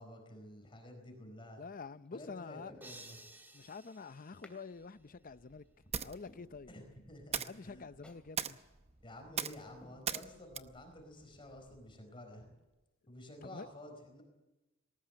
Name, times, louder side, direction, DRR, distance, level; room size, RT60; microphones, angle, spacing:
voice 1, 0.0-1.6 2.1-3.2 6.7-7.9 9.0-12.5 13.1-14.2, left 1 dB, 25° left, 4.4 m, -51 dB
voice 2, 1.6-2.7 3.5-5.6 6.0-6.7 7.5-8.6 13.4-13.7, left 4 dB, 45° left, 0.7 m, -47 dB
sound 1, 2.1-2.2 2.6-3.5 4.4-4.6 5.1-5.2 5.7-5.8 6.3-7.1 7.5-7.6 8.0-8.3 8.7-8.8 9.3-9.4 9.8-10.7 11.1-11.2, left 1 dB, 5° left, 2.8 m, -61 dB
sound 2, 2.8-5.1, right 1 dB, 10° right, 2.1 m, -55 dB
sound 3, 4.8-12.0, right 7 dB, 30° right, 0.8 m, -43 dB
19.5 x 19.0 x 8.7 m
head